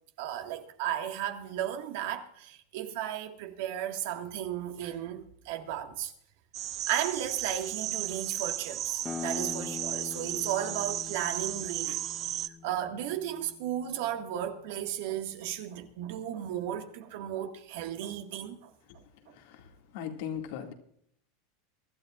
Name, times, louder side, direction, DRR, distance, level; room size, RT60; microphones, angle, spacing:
voice 1, 0.2-6.1 6.9-12.0 12.6-18.7, right 10 dB, 70° right, 1.8 m, -35 dB
sound 1, 6.5-12.5, right 13 dB, 40° right, 0.6 m, -35 dB
sound 2, 9.0-14.4, left 6 dB, 15° left, 0.6 m, -43 dB
voice 2, 19.3-20.7, left 8 dB, 70° left, 2.1 m, -39 dB
24.0 x 12.5 x 2.5 m
supercardioid pair, 140°, 0 cm